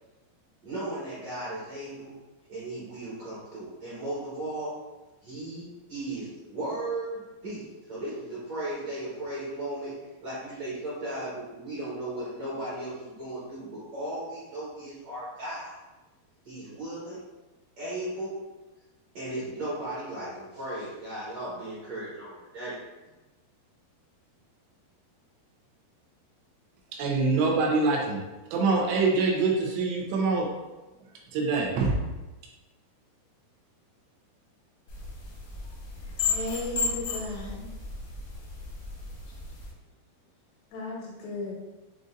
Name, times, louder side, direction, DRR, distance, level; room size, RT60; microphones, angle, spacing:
voice 1, 0.6-2.1 2.5-4.8 5.2-9.9 10.2-15.8 16.4-17.2 17.8-18.4 19.1-22.8, right 1 dB, 60° right, -10 dB, 1.8 m, -36 dB
voice 2, 27.0-28.2 28.5-30.5 31.3-32.0, right 3 dB, 85° right, -2 dB, 3.0 m, -24 dB
sound 1, 34.9-39.7, left 4 dB, 70° left, 1.6 m, -34 dB
voice 3, 36.0-37.8 40.7-41.6, left 2 dB, 85° left, -3 dB, 3.3 m, -35 dB
7.7 x 2.6 x 2.5 m, 1.1 s
omnidirectional pair, 4.9 m